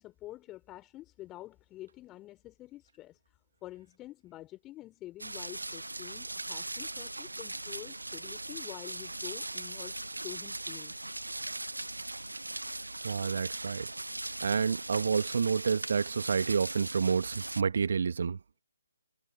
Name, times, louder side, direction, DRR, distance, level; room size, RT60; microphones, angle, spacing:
voice 1, 0.0-3.2 3.6-10.9, left 15 dB, 15° left, 3.5 m, -48 dB
sound 1, 5.2-17.6, right 2 dB, 75° right, 1.0 m, -39 dB
voice 2, 13.0-13.9 14.4-18.4, right 6 dB, 50° right, 1.9 m, -29 dB
figure-of-eight pair, 145°, 0 cm